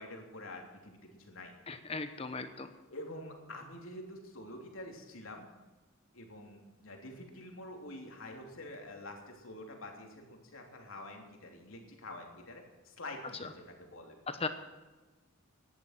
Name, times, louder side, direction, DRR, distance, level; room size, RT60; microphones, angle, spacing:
voice 1, 0.0-1.5 2.9-5.5 6.1-14.1, left 1 dB, 80° left, 2 dB, 3.2 m, -47 dB
voice 2, 1.7-2.7 14.3-14.5, left 3 dB, 30° left, 9 dB, 0.9 m, -37 dB
17.5 x 11.0 x 5.9 m, 1.2 s
head